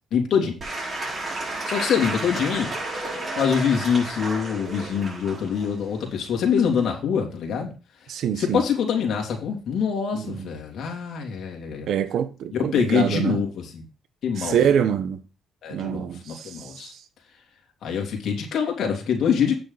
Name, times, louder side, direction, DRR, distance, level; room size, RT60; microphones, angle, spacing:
voice 1, 0.1-0.6 1.6-2.7 3.4-7.7 8.4-11.9 12.5-13.9 14.2-14.8 15.6-16.9 17.8-19.6, left 7 dB, 70° left, 3.2 m, -25 dB
Applause / Crowd, 0.6-6.9, right 2 dB, 35° right, 6.1 m, -32 dB
voice 2, 8.1-8.6 10.1-10.5 11.9-13.4 14.4-15.2 15.7-16.7, right 8 dB, 75° right, 1.1 m, -25 dB
9.3 x 6.8 x 4.1 m
cardioid pair, 90°, 0 cm